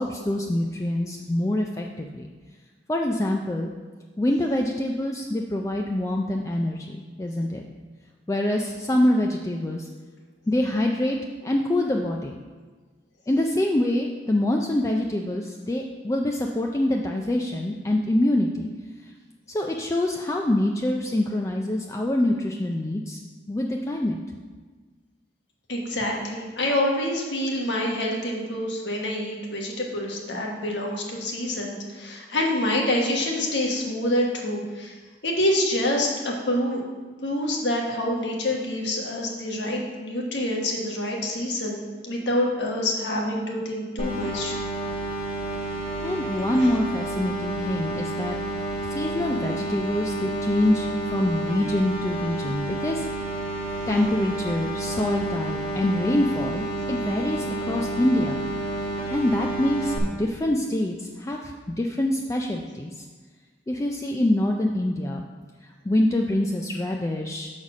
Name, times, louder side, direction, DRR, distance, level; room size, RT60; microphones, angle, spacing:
voice 1, 0.0-2.3 2.9-3.7 4.2-7.6 8.3-9.9 10.5-11.2 11.4-12.4 13.3-18.7 19.5-23.2 23.5-24.2 46.0-48.4 48.9-53.1 53.9-58.4 59.1-63.0 63.7-65.2 65.6-67.5, left 1 dB, 20° left, 1 dB, 0.4 m, -25 dB
voice 2, 25.7-34.9 35.2-36.8 37.2-44.6, left 1 dB, 85° left, 0 dB, 1.3 m, -26 dB
sound 1, 44.0-60.0, right 1 dB, 35° left, 1.3 m, -30 dB
6.3 x 4.1 x 6.0 m, 1.4 s
head